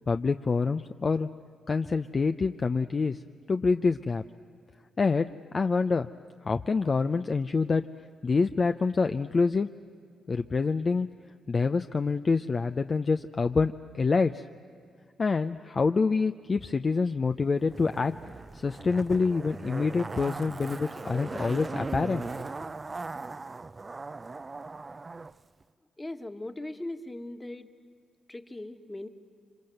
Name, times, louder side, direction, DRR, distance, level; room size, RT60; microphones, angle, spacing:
voice 1, 0.1-1.3 1.7-3.2 3.5-4.2 5.0-5.3 5.5-6.1 6.4-7.8 8.2-9.7 10.3-11.1 11.5-14.4 15.2-18.1 18.5-22.3, left 4 dB, 40° left, 8 dB, 0.6 m, -26 dB
Zipper (clothing), 17.7-25.3 25.6-25.7, right 3 dB, 30° right, 0.6 m, -38 dB
voice 2, 26.0-27.7 28.3-29.1, left 1 dB, 20° left, 7 dB, 1.7 m, -39 dB
27.5 x 25.0 x 7.9 m, 2.2 s
cardioid pair, 70°, 0 cm